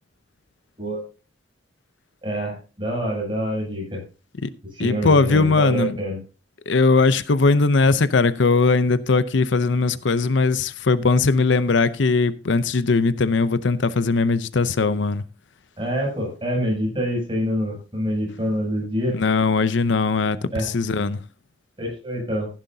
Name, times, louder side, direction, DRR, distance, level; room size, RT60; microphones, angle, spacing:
voice 1, 2.2-4.0 4.8-6.2 15.8-19.2 20.5-20.7 21.8-22.5, equal, 25° right, 7.5 m, -26 dB
voice 2, 4.8-6.0 6.7-15.2 19.1-21.2, left 3 dB, 75° left, 0.6 m, -19 dB
15.5 x 10.5 x 2.8 m
head